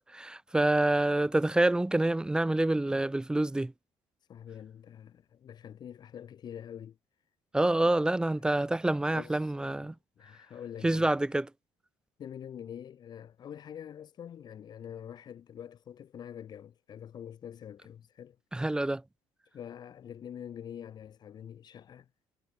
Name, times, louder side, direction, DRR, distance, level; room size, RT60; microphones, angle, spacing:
voice 1, 0.1-3.7 7.5-9.9 10.8-11.5 18.5-19.0, right 1 dB, 10° right, 1.1 m, -27 dB
voice 2, 4.3-7.0 8.3-8.4 9.1-11.1 12.2-18.4 19.5-22.1, left 9 dB, 45° left, 1.6 m, -45 dB
cardioid pair, 115°, 10 cm